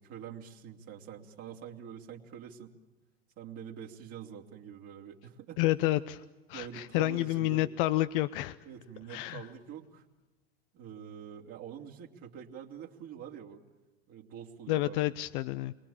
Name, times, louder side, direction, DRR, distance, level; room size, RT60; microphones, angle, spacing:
voice 1, 0.0-2.7 3.4-5.6 6.5-7.6 8.6-10.1 10.7-13.6 14.1-15.0, right 8 dB, 50° right, 0 dB, 3.1 m, -45 dB
voice 2, 5.6-8.6 9.1-9.4 14.7-15.7, left 16 dB, 60° left, 13 dB, 0.8 m, -29 dB
28.5 x 23.5 x 8.8 m, 1.2 s
hypercardioid pair, 90°, 31 cm